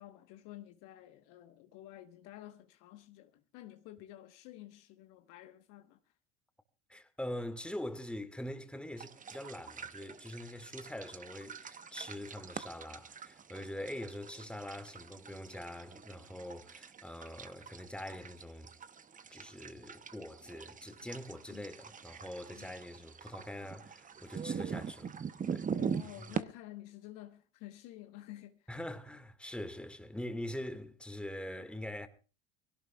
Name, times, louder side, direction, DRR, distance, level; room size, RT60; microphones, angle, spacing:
voice 1, 0.0-6.0 21.5-21.7 22.5-22.7 25.8-28.7, left 14 dB, 60° left, 1.3 m, -51 dB
voice 2, 6.9-18.7 19.3-25.2 25.5-25.7 26.2-26.3 28.7-32.1, left 1 dB, 5° left, 2.0 m, -43 dB
sound 1, 9.0-26.4, right 6 dB, 20° right, 0.9 m, -43 dB
24.0 x 17.0 x 2.4 m
hypercardioid pair, 75°, 35 cm